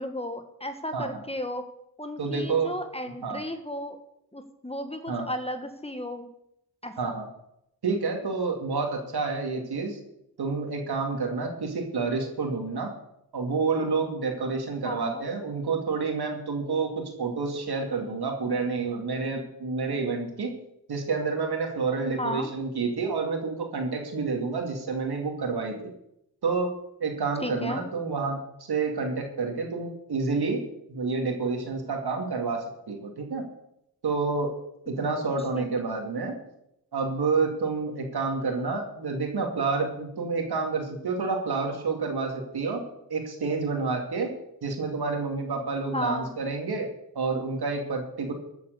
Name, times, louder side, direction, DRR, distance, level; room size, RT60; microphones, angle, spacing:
voice 1, 0.0-1.6 2.0-4.0 4.3-6.3 6.8-7.1 14.8-15.2 22.2-22.5 27.4-27.8 35.5-36.0 45.9-46.3, equal, 15° left, 7 dB, 1.4 m, -34 dB
voice 2, 2.2-2.8 3.2-3.4 5.1-5.3 7.0-7.3 7.8-10.0 10.4-12.9 13.3-20.5 20.9-25.9 26.4-26.7 27.0-30.6 30.9-33.4 34.0-34.5 34.9-36.4 36.9-42.8 43.1-44.3 44.6-46.9 47.1-48.3, right 4 dB, 80° right, 2 dB, 2.7 m, -29 dB
14.5 x 8.2 x 6.8 m, 0.79 s
wide cardioid pair, 100°, 38 cm